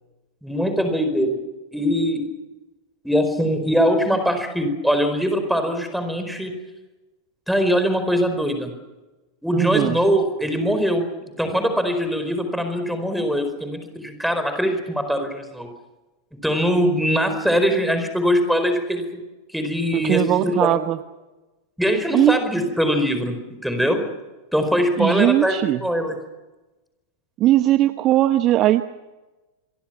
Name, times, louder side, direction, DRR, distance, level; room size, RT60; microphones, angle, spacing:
voice 1, 0.4-1.4 1.7-2.3 3.0-6.5 7.5-8.7 9.4-11.1 11.4-15.7 16.4-19.2 19.5-20.7 21.8-23.4 23.6-24.0 24.5-26.2, equal, ahead, 7 dB, 4.7 m, -22 dB
voice 2, 9.5-10.0 19.9-21.0 22.1-22.4 25.0-25.8 27.4-28.8, right 14 dB, 35° right, 11 dB, 1.0 m, -19 dB
27.5 x 22.5 x 6.0 m, 1.1 s
figure-of-eight pair, 90°, 0 cm